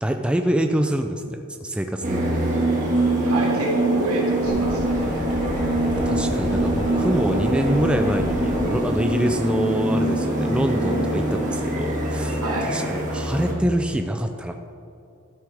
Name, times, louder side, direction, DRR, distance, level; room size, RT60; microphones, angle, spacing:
voice 1, 0.0-2.5 6.1-14.5, right 1 dB, 5° right, 5 dB, 0.3 m, -25 dB
sound 1, 2.0-13.5, right 1 dB, 35° right, 1.9 m, -24 dB
voice 2, 3.2-5.1 12.4-12.7, right 1 dB, 80° right, -3 dB, 2.2 m, -27 dB
sound 2, 4.4-8.8, left 1 dB, 20° left, 1.0 m, -30 dB
12.5 x 7.9 x 3.5 m, 2.6 s
head